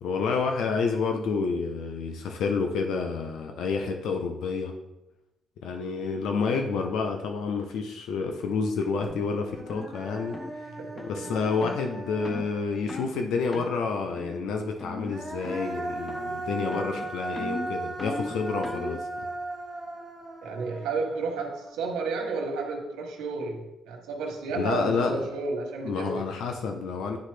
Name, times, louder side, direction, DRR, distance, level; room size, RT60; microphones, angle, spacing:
voice 1, 0.0-4.7 5.6-10.4 11.1-19.1 24.5-25.2 25.8-27.2, left 4 dB, 80° left, 4 dB, 0.7 m, -29 dB
Human voice, 9.0-9.1 9.5-13.1 14.8-22.1, right 2 dB, 10° right, 1.5 m, -37 dB
sound 1, 9.1-9.2 9.7-9.9 10.3-10.5 11.0-11.2 11.6-11.8 12.2-12.5 12.9-13.1 13.5-13.8 14.2-14.5 14.8-15.2 15.4-15.8 16.1-16.4 16.7-19.0, left 2 dB, 20° left, 0.4 m, -38 dB
voice 2, 10.8-11.3 20.4-26.2, right 3 dB, 90° right, 1 dB, 1.0 m, -32 dB
9.5 x 3.8 x 3.3 m, 0.94 s
cardioid pair, 90°, 0 cm